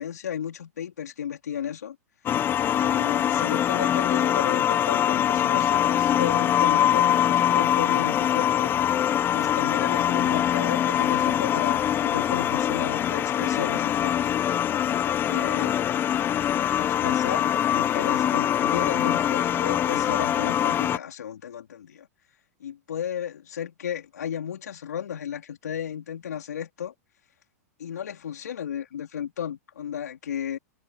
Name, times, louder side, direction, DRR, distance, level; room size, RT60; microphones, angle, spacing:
voice 1, 0.0-2.0 2.8-8.7 9.3-14.3 15.0-15.7 16.8-22.1 22.6-26.9 27.8-30.6, left 9 dB, 85° left, 4.3 m, -33 dB
sound 1, 2.3-21.0, left 10 dB, 25° left, 1.1 m, -23 dB
hypercardioid pair, 125°, 9 cm